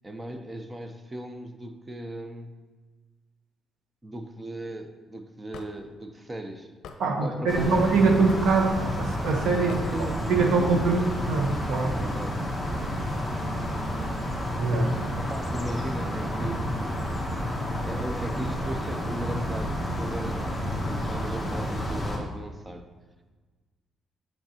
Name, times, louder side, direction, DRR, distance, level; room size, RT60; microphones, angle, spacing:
voice 1, 0.0-2.5 4.0-6.7 7.2-7.9 9.9-11.1 12.0-12.5 15.2-17.2 17.8-22.9, right 1 dB, 20° right, 7 dB, 0.7 m, -37 dB
Hammer / Wood, 5.5-5.7 6.8-7.0 8.3-8.6 9.7-9.9, left 6 dB, 75° left, 0.6 m, -41 dB
voice 2, 7.0-9.9 10.3-12.0 14.6-15.1, right 4 dB, 75° right, 3 dB, 1.0 m, -24 dB
sound 1, 7.5-22.2, equal, ahead, 1.4 m, -30 dB
7.8 x 6.4 x 2.9 m, 1.3 s
cardioid pair, 90°, 0 cm